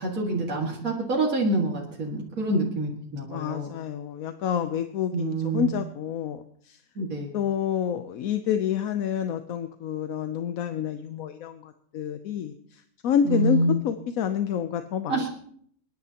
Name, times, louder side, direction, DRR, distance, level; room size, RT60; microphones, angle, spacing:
voice 1, 0.0-3.7 5.1-5.7 7.0-7.3 13.2-13.8 15.1-15.3, right 2 dB, 80° right, -2 dB, 2.4 m, -26 dB
voice 2, 3.2-6.8 7.3-13.6 13.8-15.3, left 9 dB, 85° left, 9 dB, 1.1 m, -28 dB
29.0 x 10.5 x 2.9 m, 0.64 s
omnidirectional pair, 1.4 m